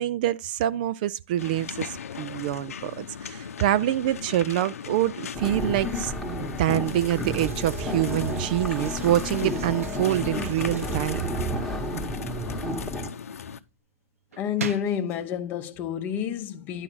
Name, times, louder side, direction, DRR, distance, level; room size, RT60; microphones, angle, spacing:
voice 1, 0.0-6.1 6.6-11.4, right 13 dB, 40° right, 0.4 m, -26 dB
sound 1, 1.4-13.6, left 7 dB, 85° left, 0.8 m, -38 dB
sound 2, 5.3-13.1, left 1 dB, 5° left, 1.1 m, -31 dB
sound 3, 6.8-11.8 14.3-15.2, right 6 dB, 90° right, 1.1 m, -41 dB
voice 2, 14.4-16.8, left 9 dB, 25° left, 0.8 m, -29 dB
11.0 x 3.8 x 6.2 m
hypercardioid pair, 155°, 8 cm